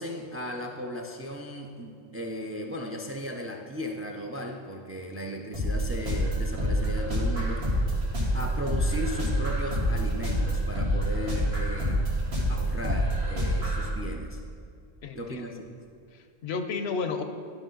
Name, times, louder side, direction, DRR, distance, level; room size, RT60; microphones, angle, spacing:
voice 1, 0.0-7.8 8.3-12.0 12.5-14.4 15.2-15.7, equal, 20° right, 2 dB, 0.3 m, -36 dB
sound 1, 5.5-13.9, equal, 90° right, 1.9 m, -27 dB
voice 2, 15.0-15.6 16.1-17.2, left 5 dB, 85° left, 7 dB, 0.9 m, -33 dB
12.0 x 4.9 x 3.8 m, 2.3 s
omnidirectional pair, 1.0 m